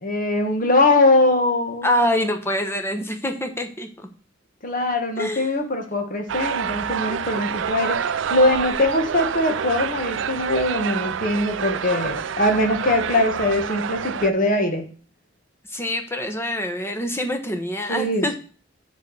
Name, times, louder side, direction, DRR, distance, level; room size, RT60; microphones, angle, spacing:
voice 1, 0.0-1.9 4.6-14.8 17.9-18.4, left 2 dB, 45° left, 5 dB, 1.6 m, -21 dB
voice 2, 1.8-4.1 5.2-5.5 15.7-18.4, left 1 dB, 15° left, 5 dB, 1.1 m, -25 dB
sound 1, 6.3-14.3, right 7 dB, 75° right, 0.4 m, -27 dB
7.5 x 4.7 x 7.0 m, 0.40 s
head